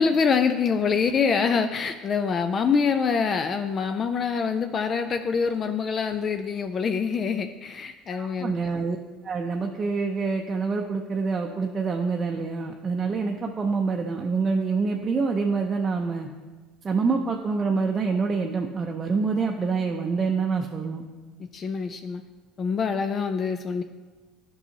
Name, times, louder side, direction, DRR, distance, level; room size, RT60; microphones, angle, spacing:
voice 1, 0.0-8.5 21.5-22.2 22.6-23.8, left 5 dB, 40° left, 8 dB, 0.4 m, -25 dB
voice 2, 8.1-9.0 9.2-16.3 16.8-21.0, right 4 dB, 30° right, 1 dB, 0.6 m, -26 dB
10.5 x 5.5 x 2.8 m, 1.3 s
hypercardioid pair, 70°, 0 cm